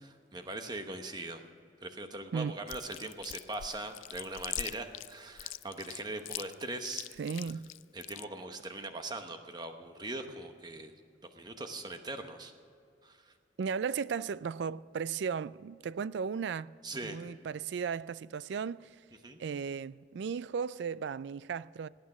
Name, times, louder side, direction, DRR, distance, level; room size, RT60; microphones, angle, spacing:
voice 1, 0.3-1.4 1.8-7.1 7.9-10.9 11.3-12.5 13.0-13.3 16.8-17.2 19.2-19.4, right 2 dB, 20° right, 1.0 m, -41 dB
Chewing mastication, 2.7-8.2, left 15 dB, 90° left, 0.3 m, -41 dB
voice 2, 7.2-7.7 13.6-16.7 17.0-19.0 19.4-21.9, right 6 dB, 65° right, 0.3 m, -35 dB
18.0 x 9.3 x 6.0 m
head